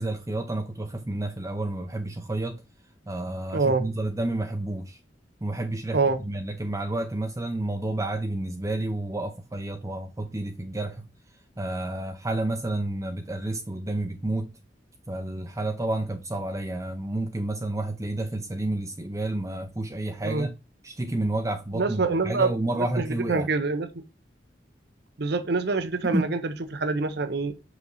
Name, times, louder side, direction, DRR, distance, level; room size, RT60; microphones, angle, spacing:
voice 1, 0.0-2.6 3.1-5.0 5.4-11.1 11.6-14.5 15.1-20.5 20.8-23.5 26.0-26.3, right 2 dB, 15° right, 0.6 m, -30 dB
voice 2, 3.5-3.9 5.9-6.2 20.2-20.5 21.7-22.5 23.0-23.9 25.2-27.5, right 3 dB, 60° right, 0.7 m, -25 dB
5.8 x 5.2 x 4.0 m
head